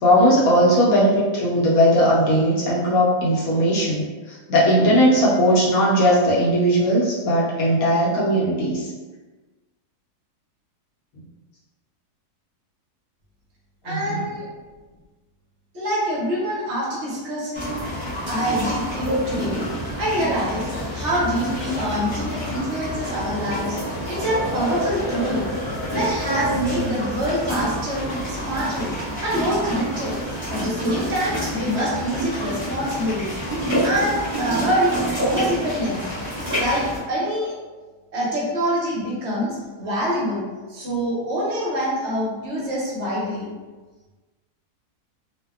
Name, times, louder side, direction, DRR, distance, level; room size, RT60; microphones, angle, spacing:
voice 1, 0.0-8.9 13.9-14.2, equal, 70° left, -5 dB, 1.0 m, -18 dB
voice 2, 13.8-14.5 15.7-17.8 18.3-19.6 20.0-20.7 20.9-23.8 24.1-25.4 25.9-30.1 30.5-34.9 35.2-36.0 36.5-37.5 38.1-40.4 40.7-43.5, equal, 55° right, -6 dB, 0.9 m, -25 dB
sound 1, 17.5-37.0, equal, 10° right, 0.8 m, -28 dB
2.6 x 2.2 x 2.2 m, 1.3 s
omnidirectional pair, 1.7 m